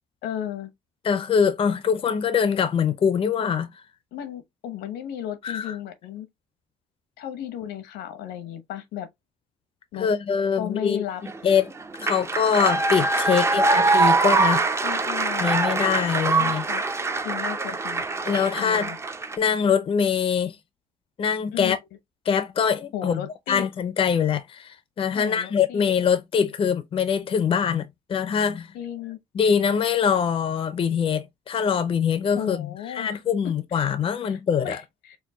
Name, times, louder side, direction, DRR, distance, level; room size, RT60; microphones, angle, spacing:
voice 1, 0.2-0.7 4.1-6.3 7.2-9.1 9.9-10.1 10.5-11.2 13.3-13.8 14.8-15.5 16.4-16.8 17.2-18.0 18.6-19.0 21.5-21.8 22.9-23.7 25.1-25.9 28.7-29.2 32.3-33.1 33.4-33.8 34.2-35.2, left 10 dB, 85° left, 0.9 m, -34 dB
voice 2, 1.0-3.7 5.4-5.7 10.0-11.0 11.4-11.7 12.0-14.6 15.4-16.7 18.3-18.9 19.4-20.6 21.2-21.8 22.3-23.2 23.5-28.7 29.3-34.8, left 7 dB, 35° left, 0.5 m, -23 dB
sound 1, 11.3-19.4, right 3 dB, 15° right, 0.4 m, -23 dB
4.4 x 2.2 x 2.8 m
cardioid pair, 110°, 17 cm